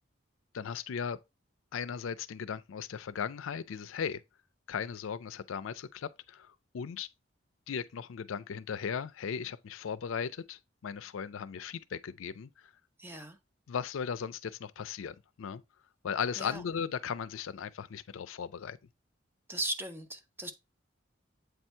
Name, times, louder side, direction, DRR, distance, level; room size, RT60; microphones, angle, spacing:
voice 1, 0.5-1.2 1.7-4.2 4.7-7.1 7.7-12.7 13.7-15.6 16.0-18.8, left 7 dB, 90° left, 0.4 m, -37 dB
voice 2, 13.0-13.4 16.4-16.6 19.5-20.5, right 1 dB, 10° right, 0.6 m, -37 dB
8.0 x 2.7 x 4.3 m
head